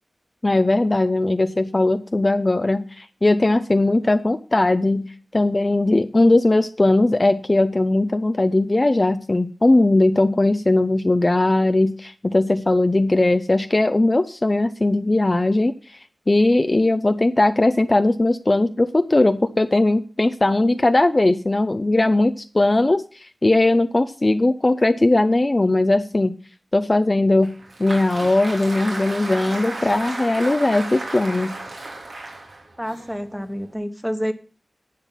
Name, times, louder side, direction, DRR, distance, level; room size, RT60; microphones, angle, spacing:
voice 1, 0.4-16.0 16.3-26.3 26.7-27.5 27.8-31.6, left 2 dB, 35° left, 9 dB, 0.6 m, -19 dB
Applause, 27.4-33.7, right 2 dB, 90° right, 3.0 m, -34 dB
voice 2, 32.8-34.3, equal, 5° right, 9 dB, 1.3 m, -28 dB
11.0 x 7.8 x 5.7 m, 0.38 s
wide cardioid pair, 70°, 0 cm